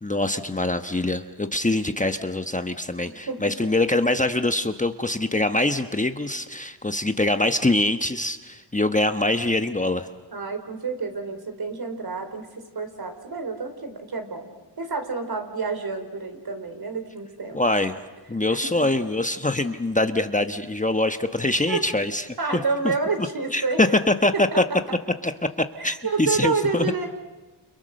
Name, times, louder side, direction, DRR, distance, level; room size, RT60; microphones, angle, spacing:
voice 1, 0.0-10.1 17.5-17.9 18.3-22.3 22.8-22.9 23.2-23.3 23.5-24.6 25.2-25.3 25.8-26.9, left 2 dB, 15° left, 7 dB, 1.1 m, -24 dB
voice 2, 3.0-3.5 10.3-14.5 14.8-17.6 18.5-18.9 21.7-21.8 22.4-23.8 24.3-24.6 25.8-27.1, right 4 dB, 55° right, 6 dB, 4.1 m, -29 dB
30.0 x 29.5 x 6.6 m, 1.2 s
cardioid pair, 75°, 45 cm